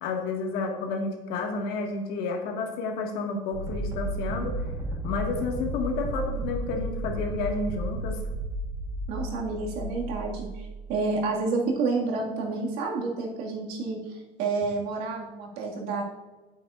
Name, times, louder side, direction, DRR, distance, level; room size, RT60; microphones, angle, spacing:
voice 1, 0.0-4.6 5.0-8.2, left 3 dB, 65° left, 2 dB, 1.7 m, -31 dB
sound 1, 3.5-11.2, right 1 dB, 20° right, 1.3 m, -33 dB
voice 2, 9.1-16.0, right 3 dB, 70° right, -1 dB, 1.9 m, -29 dB
9.4 x 8.5 x 2.4 m, 1.2 s
cardioid pair, 155°, 17 cm